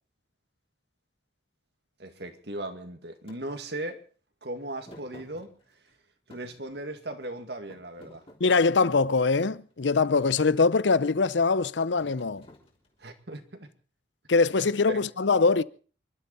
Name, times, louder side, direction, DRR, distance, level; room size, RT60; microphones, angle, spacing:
voice 1, 2.0-4.0 4.4-5.6 6.3-8.2 13.0-13.7 14.9-15.1, right 1 dB, 70° right, 2.1 m, -37 dB
Thump thud, 3.3-3.4 4.9-5.9 6.3-7.3 7.7-9.1 9.7-9.9 10.2-10.6 12.0-13.1, left 1 dB, 30° left, 3.4 m, -52 dB
voice 2, 8.4-12.4 14.3-15.6, left 4 dB, 90° left, 0.7 m, -23 dB
28.5 x 12.0 x 4.1 m
head